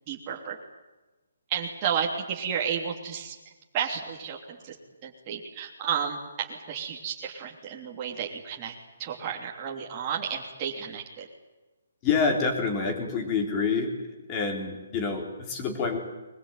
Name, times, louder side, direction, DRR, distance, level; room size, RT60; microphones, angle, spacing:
voice 1, 0.1-0.6 1.5-3.3 3.7-4.7 5.0-8.7 9.0-11.3, right 7 dB, 20° right, -1 dB, 3.1 m, -32 dB
voice 2, 12.0-13.9 14.3-16.0, left 5 dB, 20° left, 2 dB, 3.8 m, -27 dB
22.5 x 22.0 x 9.1 m, 1.2 s
hypercardioid pair, 170°, 0 cm